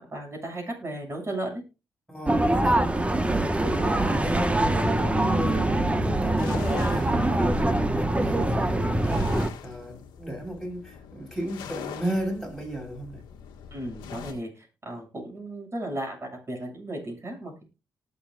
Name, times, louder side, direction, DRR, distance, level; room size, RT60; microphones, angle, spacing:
voice 1, 0.0-1.6 13.7-17.6, right 1 dB, 35° right, 7.3 m, -35 dB
voice 2, 2.1-13.2, right 1 dB, ahead, 7.1 m, -34 dB
sound 1, 2.3-9.5, right 1 dB, 15° right, 1.5 m, -24 dB
sound 2, 6.2-14.3, left 8 dB, 90° left, 1.8 m, -42 dB
19.0 x 6.9 x 2.6 m
supercardioid pair, 55°, 7 cm